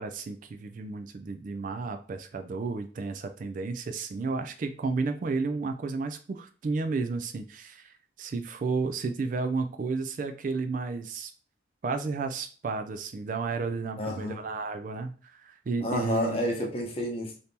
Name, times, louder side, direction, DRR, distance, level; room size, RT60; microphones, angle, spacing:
voice 1, 0.0-11.3 11.8-16.4, right 4 dB, 45° right, 0.3 m, -32 dB
voice 2, 14.0-14.4 15.8-17.4, equal, 30° left, 0.7 m, -30 dB
2.8 x 2.6 x 3.5 m
head